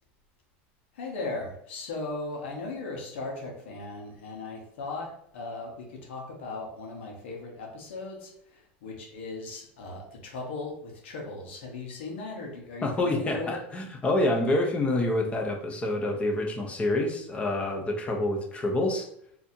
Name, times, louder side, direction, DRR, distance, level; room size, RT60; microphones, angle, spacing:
voice 1, 1.0-13.6, left 3 dB, 90° left, 0 dB, 1.1 m, -38 dB
voice 2, 12.8-19.1, left 2 dB, 20° left, 2 dB, 0.8 m, -27 dB
4.0 x 2.8 x 2.8 m, 0.72 s
supercardioid pair, 125°, 6 cm